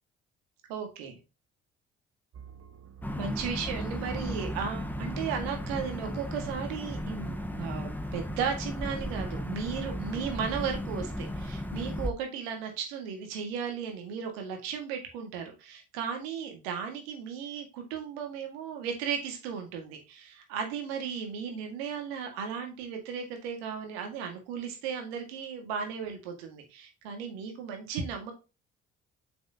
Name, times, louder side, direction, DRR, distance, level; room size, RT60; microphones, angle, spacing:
voice 1, 0.7-1.2 3.2-28.3, right 7 dB, 80° right, 4 dB, 1.8 m, -35 dB
sound 1, 2.3-7.4, right 8 dB, 50° right, 1.3 m, -48 dB
sound 2, 3.0-12.1, left 1 dB, 5° left, 1.0 m, -35 dB
7.0 x 6.0 x 2.7 m, 0.30 s
hypercardioid pair, 50°, 31 cm